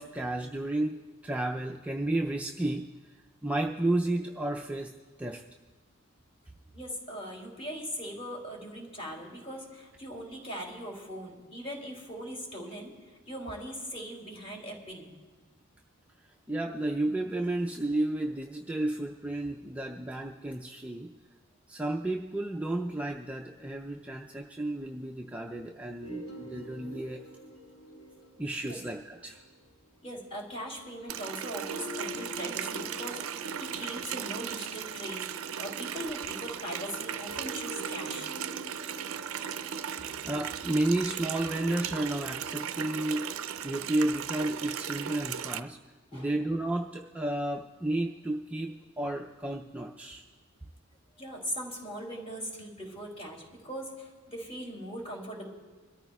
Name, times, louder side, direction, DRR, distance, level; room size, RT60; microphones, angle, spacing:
voice 1, 0.0-2.9 3.4-5.4 16.5-21.1 21.7-27.2 28.4-29.4 40.2-43.3 43.6-45.8 46.1-50.2, right 1 dB, 5° right, 0 dB, 0.4 m, -32 dB
voice 2, 6.7-12.9 13.3-15.2 28.7-28.8 30.0-38.3 46.1-46.3 51.2-55.5, equal, 30° left, -1 dB, 2.8 m, -40 dB
sound 1, 26.0-29.8 31.4-35.9 37.3-42.5, equal, 80° left, 3.2 m, -46 dB
Water tap faucet, 31.1-45.6, right 8 dB, 70° right, 0.4 m, -37 dB
25.5 x 13.5 x 2.3 m, 1.3 s
head